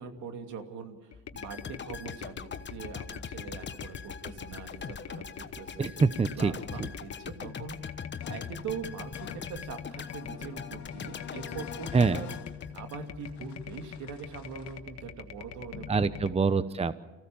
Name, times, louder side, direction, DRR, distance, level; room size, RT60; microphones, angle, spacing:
voice 1, 0.0-5.9 6.4-7.8 8.3-12.4 12.7-16.0, right 6 dB, 75° right, 5 dB, 2.7 m, -42 dB
sound 1, 1.1-16.3, left 8 dB, 60° left, 1.5 m, -44 dB
sound 2, 1.3-13.4 13.7-13.8, left 6 dB, 40° left, 1.2 m, -42 dB
voice 2, 5.8-6.5 6.8-6.9 11.9-12.2 15.9-16.9, right 4 dB, 20° right, 14 dB, 0.8 m, -25 dB
sound 3, 8.2-14.8, left 9 dB, 75° left, 1.9 m, -48 dB
24.5 x 16.0 x 7.2 m, 1.1 s
supercardioid pair, 70°, 29 cm